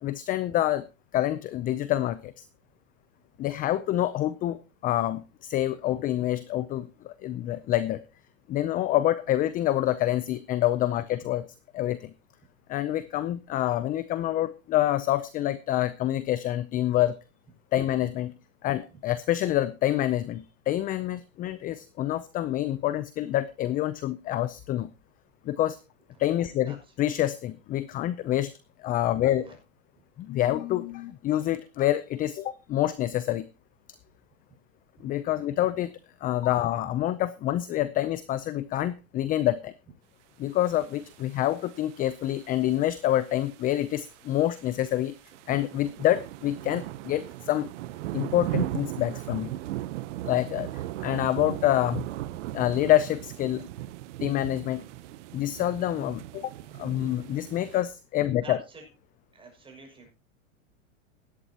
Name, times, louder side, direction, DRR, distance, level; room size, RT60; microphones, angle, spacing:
voice 1, 0.0-0.8 1.1-2.5 3.4-8.0 8.5-11.4 11.7-12.1 12.7-17.2 17.7-18.3 18.6-24.9 25.4-25.8 26.2-28.5 28.8-29.5 30.2-33.5 35.0-35.9 36.2-39.7 40.4-45.1 45.5-47.7 48.1-49.5 50.3-52.0 52.5-53.7 54.2-54.8 55.3-56.5 56.8-58.6, left 13 dB, 20° left, 16 dB, 0.5 m, -27 dB
sound 1, 40.6-57.8, right 15 dB, 60° right, 0.9 m, -38 dB
voice 2, 58.4-58.9 59.3-60.1, right 4 dB, 15° right, 2 dB, 6.2 m, -47 dB
17.0 x 11.5 x 2.9 m, 0.29 s
hypercardioid pair, 130°, 40 cm